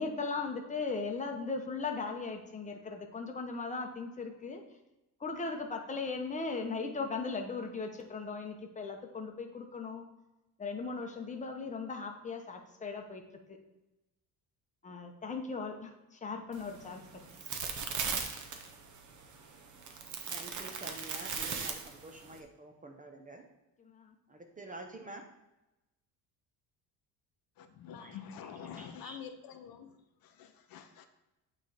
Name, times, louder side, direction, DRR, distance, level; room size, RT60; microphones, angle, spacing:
voice 1, 0.0-4.6 5.2-10.1 10.6-13.2 14.8-17.0 23.8-24.1, left 4 dB, 20° left, 3 dB, 0.8 m, -38 dB
sound 1, 16.5-22.4, right 6 dB, 45° right, 0.9 m, -39 dB
voice 2, 19.8-23.4 24.3-25.3 28.0-29.2, right 2 dB, 20° right, 4 dB, 0.6 m, -49 dB
voice 3, 27.6-30.0 30.2-31.1, left 8 dB, 60° left, 8 dB, 0.7 m, -47 dB
8.7 x 3.3 x 4.1 m, 0.98 s
cardioid pair, 135°, 41 cm